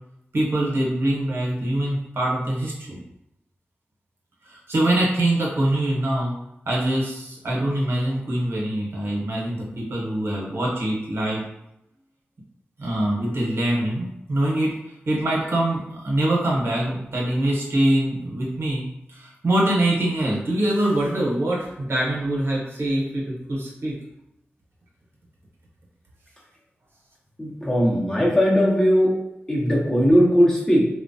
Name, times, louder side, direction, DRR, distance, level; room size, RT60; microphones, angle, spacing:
voice 1, 0.3-3.0 4.4-6.3 6.7-11.5 12.8-14.7 15.1-24.0, right 1 dB, 65° right, -4 dB, 0.9 m, -24 dB
voice 2, 27.4-29.1 29.5-30.9, equal, 15° left, -5 dB, 0.8 m, -18 dB
3.0 x 2.1 x 2.6 m, 0.82 s
wide cardioid pair, 75°, 4 cm